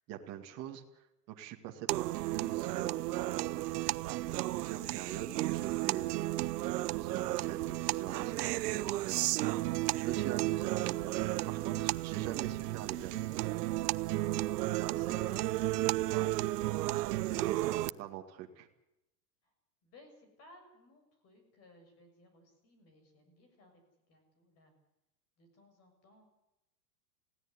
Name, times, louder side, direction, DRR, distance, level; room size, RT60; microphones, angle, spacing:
voice 1, 0.1-3.7 4.2-6.3 6.9-9.3 10.0-13.1 14.8-15.4 16.1-16.4 17.3-18.7, right 11 dB, 30° right, 2 dB, 2.2 m, -43 dB
sound 1, 1.9-17.9, right 17 dB, 70° right, 0.7 m, -33 dB
voice 2, 15.0-15.7 17.2-17.8 19.4-19.5 19.8-23.8 24.1-24.7 25.4-26.3, left 1 dB, 30° left, 5 dB, 7.1 m, -60 dB
21.0 x 16.5 x 9.9 m, 0.88 s
supercardioid pair, 155°, 50 cm